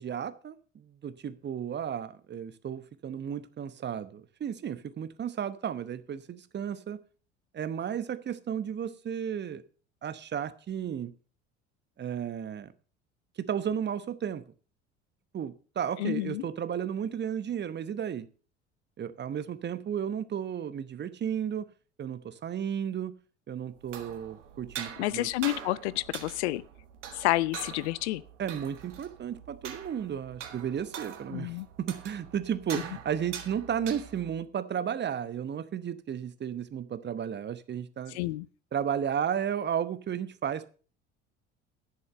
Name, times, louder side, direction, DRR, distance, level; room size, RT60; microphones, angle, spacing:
voice 1, 0.0-7.0 7.5-9.6 10.0-11.1 12.0-12.7 13.4-14.4 15.3-18.3 19.0-21.7 22.0-23.2 23.5-25.3 28.4-38.2 38.7-40.7, right 8 dB, 30° right, 1.0 m, -33 dB
voice 2, 16.0-16.4 25.0-26.6 27.1-28.2 31.3-31.7 32.7-32.8 38.1-38.5, left 18 dB, 65° left, 0.6 m, -29 dB
sound 1, 23.7-34.4, right 8 dB, 70° right, 1.7 m, -44 dB
11.5 x 6.9 x 6.5 m
figure-of-eight pair, 65°, 37 cm